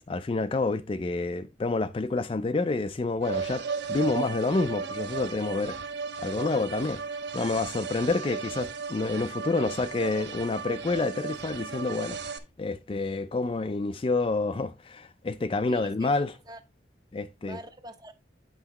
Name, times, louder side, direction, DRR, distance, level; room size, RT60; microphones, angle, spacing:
voice 1, 0.1-5.8 6.2-7.0 7.3-12.2 12.6-16.3 17.1-17.6, left 3 dB, 30° left, 0.3 m, -28 dB
sound 1, 3.2-12.4, right 5 dB, 65° right, 0.7 m, -35 dB
voice 2, 15.7-16.6 17.5-18.1, right 1 dB, 20° right, 0.7 m, -44 dB
8.7 x 5.7 x 3.0 m
head